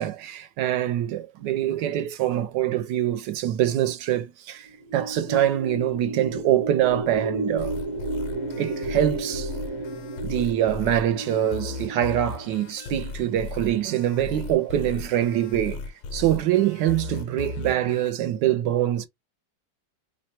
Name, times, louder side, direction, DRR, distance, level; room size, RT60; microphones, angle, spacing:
voice 1, 0.0-7.8 8.6-9.5 10.2-15.8 16.1-19.1, right 12 dB, 75° right, 1.2 m, -24 dB
sound 1, 4.7-13.1, right 2 dB, 60° right, 0.8 m, -33 dB
sound 2, 7.6-18.1, left 4 dB, 90° left, 1.3 m, -36 dB
3.2 x 2.1 x 4.1 m
omnidirectional pair, 2.0 m